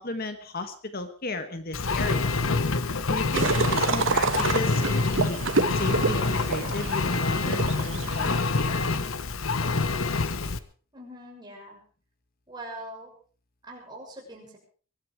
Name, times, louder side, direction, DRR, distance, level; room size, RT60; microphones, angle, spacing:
voice 1, 0.0-2.3 3.1-5.4 5.7-8.9, left 2 dB, 45° left, 8 dB, 1.4 m, -35 dB
Engine, 1.7-10.6, left 3 dB, 80° left, 1.1 m, -26 dB
sound 1, 3.3-8.4, right 4 dB, 65° right, 1.3 m, -28 dB
voice 2, 10.9-11.8 12.5-13.1 13.6-14.6, right 1 dB, 20° right, -1 dB, 6.6 m, -42 dB
23.5 x 12.0 x 4.7 m, 0.42 s
head